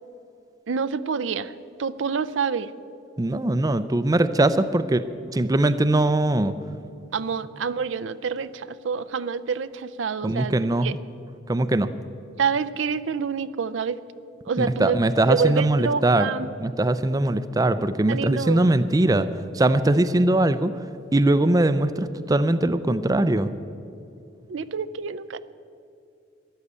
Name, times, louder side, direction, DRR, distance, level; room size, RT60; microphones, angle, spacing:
voice 1, 0.7-1.5 1.8-2.7 7.1-10.6 10.8-10.9 12.4-14.0 14.5-15.0 15.3-16.5 18.1-18.7 24.5-25.4, right 6 dB, 75° right, 15 dB, 0.5 m, -27 dB
voice 2, 3.2-6.5 10.2-11.0 11.5-11.9 14.6-16.3 16.6-19.3 19.5-20.7 21.1-23.5, right 1 dB, 20° right, 12 dB, 0.4 m, -21 dB
14.0 x 11.0 x 8.2 m, 2.5 s
head